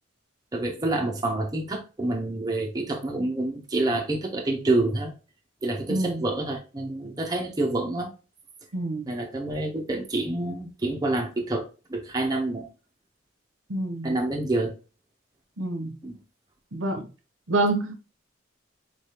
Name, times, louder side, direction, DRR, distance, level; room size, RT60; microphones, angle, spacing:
voice 1, 0.5-5.1 5.6-8.1 9.1-12.7 14.0-14.7 16.0-16.2, right 2 dB, 20° right, 0.7 m, -27 dB
voice 2, 5.9-6.2 8.7-9.1 13.7-14.2 15.6-16.0 16.7-17.1 17.5-17.9, right 2 dB, 80° right, 0.9 m, -27 dB
4.4 x 3.3 x 2.8 m
head